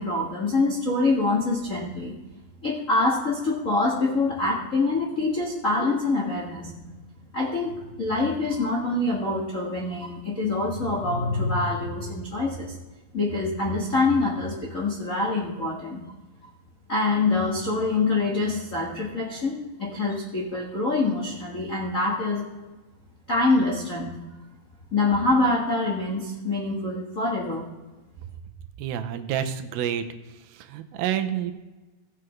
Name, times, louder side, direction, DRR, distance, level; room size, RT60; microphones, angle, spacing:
voice 1, 0.0-2.1 2.6-6.9 7.3-12.8 13.1-16.0 16.9-22.4 23.3-24.1 24.9-27.7, left 2 dB, 75° left, -3 dB, 0.7 m, -25 dB
voice 2, 28.8-30.0 30.5-31.5, right 10 dB, 85° right, 8 dB, 2.5 m, -28 dB
17.0 x 7.7 x 3.2 m, 1.2 s
omnidirectional pair, 4.2 m